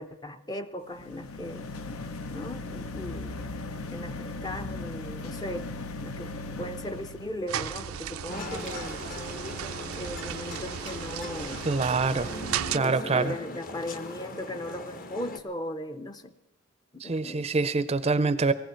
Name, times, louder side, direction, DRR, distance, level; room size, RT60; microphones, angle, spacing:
voice 1, 0.0-1.7 2.3-3.5 3.9-5.7 6.0-9.0 10.0-11.6 12.9-16.3 16.9-17.5, left 1 dB, 20° left, 9 dB, 0.5 m, -38 dB
sound 1, 0.9-7.5, left 2 dB, 85° left, 0.7 m, -38 dB
sound 2, 7.5-12.8, right 9 dB, 85° right, 0.4 m, -35 dB
sound 3, 8.3-15.4, left 2 dB, 40° left, 0.9 m, -39 dB
voice 2, 11.6-12.3 12.7-13.3 17.0-18.5, right 4 dB, 30° right, 14 dB, 0.5 m, -25 dB
18.5 x 15.5 x 4.5 m, 0.98 s
head